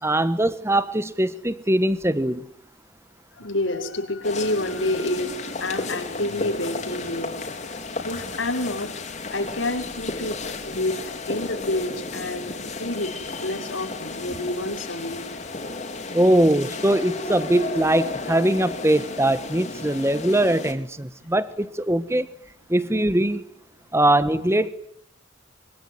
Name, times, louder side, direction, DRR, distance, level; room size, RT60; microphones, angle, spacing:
voice 1, 0.0-2.5 14.3-14.5 16.1-22.3 22.7-23.4 23.9-24.7, right 1 dB, 15° right, 1.4 m, -21 dB
voice 2, 3.3-7.3 8.0-8.9 9.3-10.4 10.7-11.0 11.3-13.1 13.4-15.2, left 1 dB, 80° left, 5.7 m, -28 dB
sound 1, 4.2-20.7, left 3 dB, 40° left, 4.3 m, -33 dB
25.0 x 24.5 x 9.7 m
head